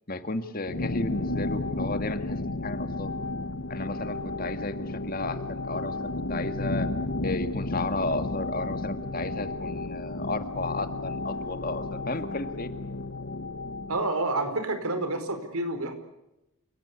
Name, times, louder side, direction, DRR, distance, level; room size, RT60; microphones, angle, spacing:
voice 1, 0.1-3.1 3.7-6.9 7.2-12.7, left 2 dB, 40° left, 9 dB, 1.9 m, -33 dB
sound 1, 0.7-14.0, left 2 dB, 60° left, 1.1 m, -33 dB
voice 2, 13.9-15.9, right 2 dB, 80° right, 9 dB, 4.7 m, -29 dB
29.0 x 18.5 x 8.4 m, 0.93 s
head